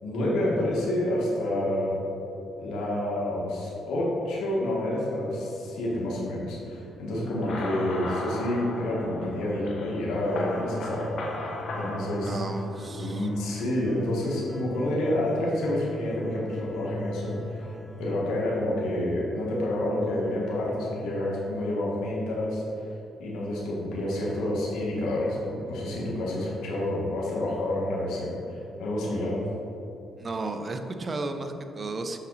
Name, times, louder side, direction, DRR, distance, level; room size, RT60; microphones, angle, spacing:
voice 1, 0.0-2.0 2.6-11.2 11.7-12.4 12.9-22.6 23.2-29.4, left 1 dB, 85° left, -5 dB, 1.8 m, -29 dB
sound 1, 7.3-13.1, left 2 dB, 65° left, 1.2 m, -37 dB
sound 2, 10.1-18.1, right 1 dB, ahead, 0.9 m, -39 dB
voice 2, 12.2-13.3 30.2-32.2, right 3 dB, 35° right, 6 dB, 0.7 m, -34 dB
8.1 x 5.9 x 4.1 m, 3.0 s
cardioid pair, 90°, 0 cm